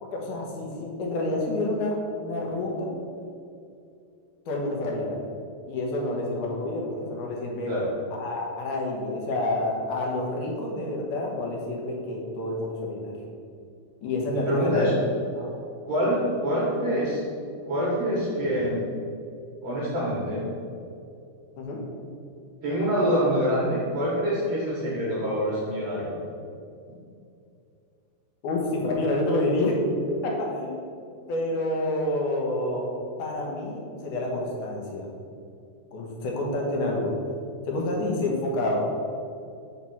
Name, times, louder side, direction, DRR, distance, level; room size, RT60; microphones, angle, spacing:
voice 1, 0.0-2.9 4.5-5.2 5.7-7.7 8.1-13.1 14.0-14.9 21.6-21.8 28.4-30.8 31.3-32.9 33.2-35.1 35.9-37.2 37.7-38.8, left 1 dB, 65° left, -1 dB, 2.2 m, -28 dB
voice 2, 14.3-14.9 15.3-15.5 15.8-17.2 17.6-18.8 19.6-20.5 22.6-26.1, equal, 65° right, -6 dB, 1.6 m, -25 dB
6.0 x 4.3 x 5.9 m, 2.5 s
omnidirectional pair, 4.5 m